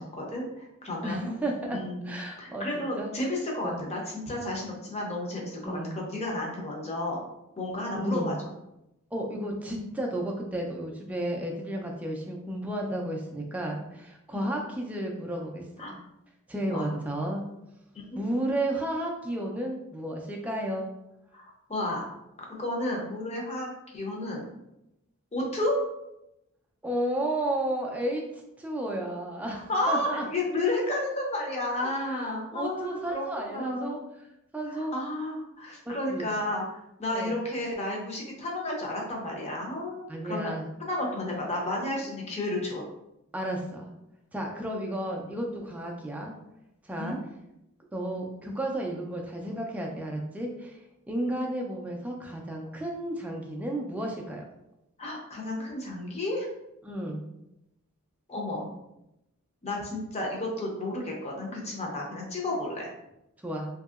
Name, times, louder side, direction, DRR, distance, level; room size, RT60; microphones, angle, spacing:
voice 1, 0.0-1.3 1.7-7.2 7.6-8.5 14.3-14.5 15.8-16.0 16.6-16.9 18.1-18.2 21.3-22.1 22.4-24.5 25.3-25.8 29.5-33.9 34.7-36.6 37.0-40.5 40.8-42.8 47.0-47.2 55.0-56.5 58.3-58.7 59.6-62.9, left 1 dB, 30° left, -1 dB, 0.6 m, -32 dB
voice 2, 1.0-2.7 3.0-3.1 3.6-3.8 5.6-6.0 7.9-8.3 9.1-16.0 16.5-17.4 18.1-20.9 26.8-30.2 31.8-34.0 34.5-35.0 35.8-36.3 37.1-37.4 40.1-40.7 43.3-43.9 44.3-46.3 46.8-47.2 47.9-50.8 51.1-54.4 56.8-57.3 63.4-63.7, right 1 dB, 5° right, 0 dB, 0.3 m, -32 dB
2.8 x 2.7 x 2.4 m, 0.87 s
head